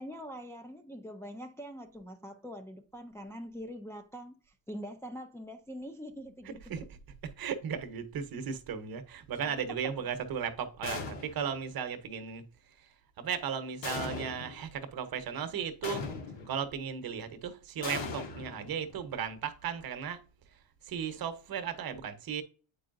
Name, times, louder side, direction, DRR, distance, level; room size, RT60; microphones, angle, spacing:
voice 1, 0.0-4.4 4.7-6.6 9.4-9.6, equal, 5° left, 0.4 m, -43 dB
voice 2, 6.4-7.0 7.2-16.0 16.5-20.2 20.5-22.4, right 7 dB, 50° right, 1.1 m, -36 dB
sound 1, 10.8-11.6 13.8-14.6 15.8-16.6 17.8-19.0, left 4 dB, 65° left, 1.7 m, -39 dB
8.3 x 4.7 x 2.6 m
cardioid pair, 105°, 47 cm